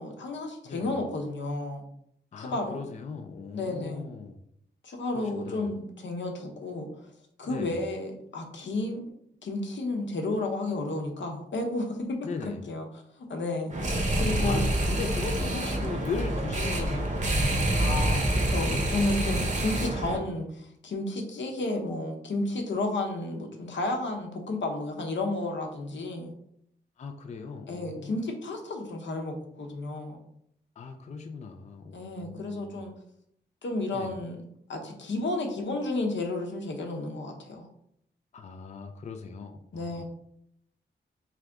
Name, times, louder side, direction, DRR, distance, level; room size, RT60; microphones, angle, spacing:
voice 1, 0.0-1.8 2.4-2.8 3.5-4.0 4.8-6.9 7.4-9.0 9.4-12.2 12.7-12.8 13.2-13.7 14.1-14.7 17.7-26.3 27.7-30.2 31.9-32.9 33.6-34.4 34.7-37.7 39.7-40.0, left 2 dB, 85° left, 3 dB, 0.8 m, -32 dB
voice 2, 0.6-1.0 2.3-4.4 5.1-5.7 7.4-7.8 12.2-12.7 14.2-17.7 18.9-19.3 27.0-28.2 30.8-32.8 33.9-34.1 38.3-40.0, left 4 dB, 40° left, 5 dB, 0.4 m, -38 dB
sound 1, 13.7-20.2, right 1 dB, 40° right, 0.8 m, -27 dB
3.8 x 3.4 x 3.5 m, 0.72 s
wide cardioid pair, 150°, 19 cm